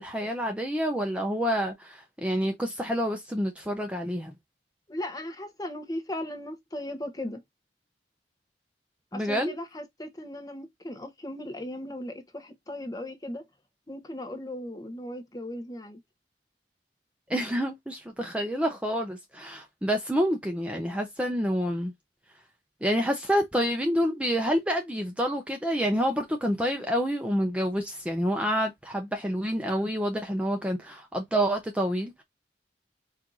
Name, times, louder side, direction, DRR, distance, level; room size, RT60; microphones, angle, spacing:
voice 1, 0.0-4.3 9.1-9.5 17.3-21.9 22.8-32.2, equal, 5° right, 0.6 m, -28 dB
voice 2, 4.9-7.4 9.1-13.4 13.9-16.0, left 1 dB, 20° left, 0.8 m, -37 dB
4.5 x 2.5 x 3.8 m
head